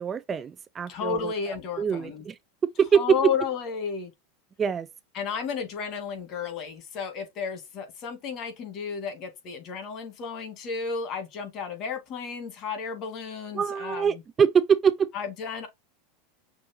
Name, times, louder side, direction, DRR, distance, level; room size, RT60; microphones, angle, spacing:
voice 1, 0.0-1.3 1.8-2.3 2.6-3.0 4.6-4.9 13.5-15.1, right 7 dB, 25° right, 0.4 m, -24 dB
voice 2, 0.9-2.3 2.9-4.1 5.1-14.2 15.1-15.7, left 6 dB, 45° left, 2.2 m, -33 dB
6.2 x 2.8 x 3.0 m
supercardioid pair, 120°, 0 cm